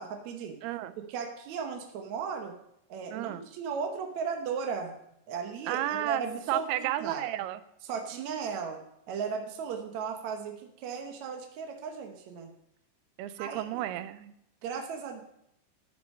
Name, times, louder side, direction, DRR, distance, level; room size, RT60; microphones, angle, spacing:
voice 1, 0.0-0.6 1.1-2.5 2.9-4.9 5.3-7.2 7.8-8.8 9.1-12.5 13.4-13.9 14.6-15.2, right 6 dB, 70° right, 3 dB, 1.8 m, -36 dB
voice 2, 0.6-0.9 3.1-3.4 5.7-6.2 6.5-7.6 8.1-8.4 13.2-14.3, right 13 dB, 85° right, 13 dB, 2.6 m, -32 dB
12.5 x 6.9 x 5.4 m, 0.77 s
omnidirectional pair, 4.5 m